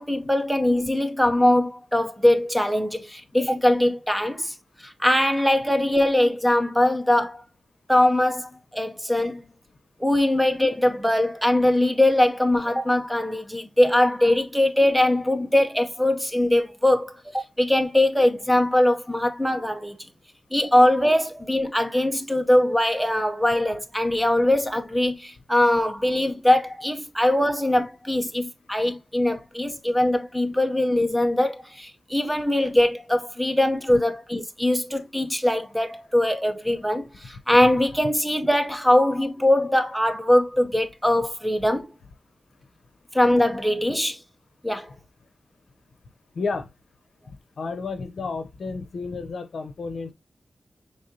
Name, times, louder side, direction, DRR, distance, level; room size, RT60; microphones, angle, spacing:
voice 1, 0.0-4.5 4.8-7.4 7.9-9.4 10.0-20.0 20.5-41.9 43.1-44.2 44.6-44.9, left 1 dB, ahead, 0.7 m, -21 dB
voice 2, 46.3-46.7 47.6-50.1, left 4 dB, 75° left, 0.7 m, -31 dB
5.2 x 3.4 x 2.7 m
wide cardioid pair, 115°, 0 cm